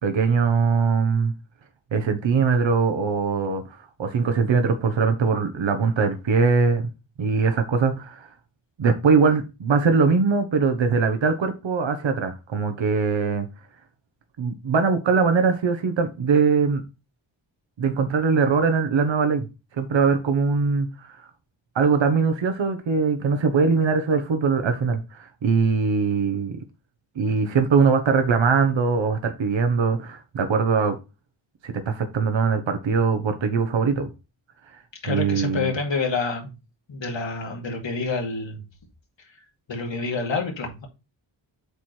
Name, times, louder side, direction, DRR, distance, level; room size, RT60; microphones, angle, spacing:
voice 1, 0.0-1.3 1.9-6.8 7.2-8.3 8.8-13.5 14.4-16.8 17.8-19.5 19.8-21.3 21.7-26.6 27.2-31.0 31.6-34.1 35.1-35.7, right 5 dB, 70° right, 1.1 m, -21 dB
voice 2, 35.0-36.5 36.9-38.6 39.7-40.9, left 4 dB, 70° left, 2.3 m, -28 dB
8.1 x 4.4 x 3.2 m
wide cardioid pair, 170°, 46 cm